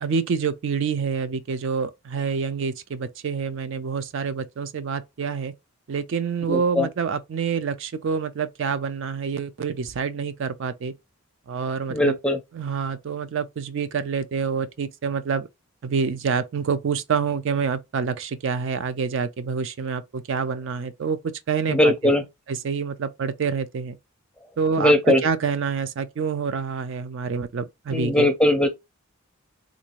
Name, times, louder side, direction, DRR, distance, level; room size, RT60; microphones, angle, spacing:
voice 1, 0.0-5.5 5.9-10.9 11.5-12.1 12.5-15.5 15.8-21.2 21.5-21.9 22.5-24.0 24.6-28.3, right 5 dB, 60° right, 0.4 m, -27 dB
voice 2, 6.5-6.9 11.9-12.4 21.7-22.2 24.8-25.2 27.9-28.7, left 1 dB, 5° left, 0.5 m, -19 dB
3.5 x 2.6 x 2.9 m
head